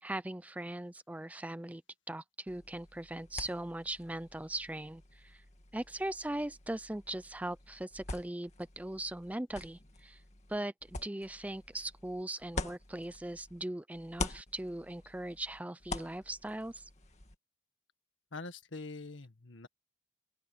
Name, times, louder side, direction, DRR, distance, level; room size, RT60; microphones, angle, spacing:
voice 1, 0.0-5.4 5.7-10.2 10.5-16.9, right 1 dB, 10° right, 0.4 m, -40 dB
sound 1, 2.5-13.6 13.9-17.4, left 2 dB, 35° left, 2.1 m, -45 dB
voice 2, 18.3-19.7, left 3 dB, 85° left, 1.7 m, -44 dB
open air
head